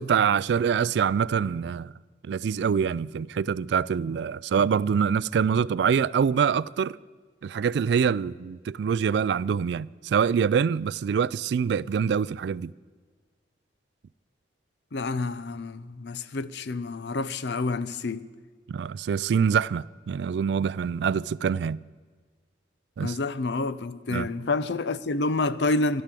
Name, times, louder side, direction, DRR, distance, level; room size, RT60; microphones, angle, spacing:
voice 1, 0.0-1.9 2.2-7.0 7.4-12.7 18.7-21.8 23.0-23.2 24.1-24.3, right 7 dB, 70° right, 0.3 m, -25 dB
voice 2, 14.9-18.3 23.0-26.0, left 3 dB, 70° left, 0.6 m, -28 dB
12.0 x 11.5 x 7.6 m
head